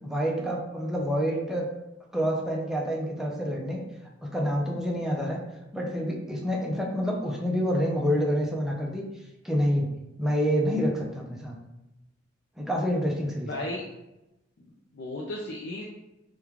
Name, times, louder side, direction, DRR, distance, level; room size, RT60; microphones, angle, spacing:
voice 1, 0.0-1.7 2.1-3.8 4.2-5.4 5.7-9.1 9.4-11.5 12.6-13.5, equal, 5° right, -1 dB, 0.5 m, -27 dB
voice 2, 13.5-13.8 14.6-15.9, left 1 dB, 65° left, -3 dB, 0.4 m, -35 dB
3.0 x 2.3 x 3.6 m, 0.94 s
head